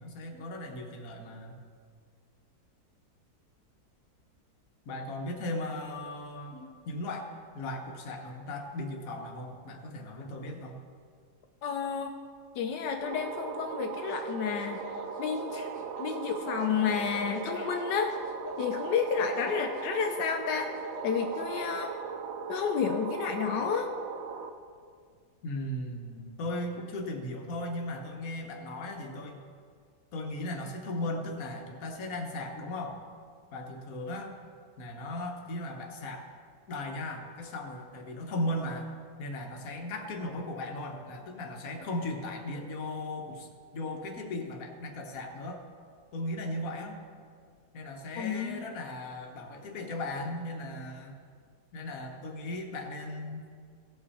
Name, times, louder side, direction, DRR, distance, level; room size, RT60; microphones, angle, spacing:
voice 1, 0.0-1.6 4.8-7.3 7.5-10.8 25.4-29.5 30.1-33.0 33.5-34.4 34.8-36.3 36.7-38.9 39.2-43.5 43.7-45.6 46.1-47.0 47.7-51.2 51.7-53.5, left 1 dB, 60° left, 2 dB, 1.5 m, -37 dB
voice 2, 11.6-12.2 12.6-14.8 15.2-18.1 18.6-20.7 21.0-21.9 22.5-23.9 48.2-48.6, left 7 dB, 85° left, 4 dB, 1.3 m, -31 dB
sound 1, 13.0-24.5, right 6 dB, 65° right, 0.9 m, -38 dB
sound 2, 14.0-21.8, left 4 dB, 35° left, 1.2 m, -44 dB
16.5 x 5.7 x 4.1 m, 2.1 s
omnidirectional pair, 1.8 m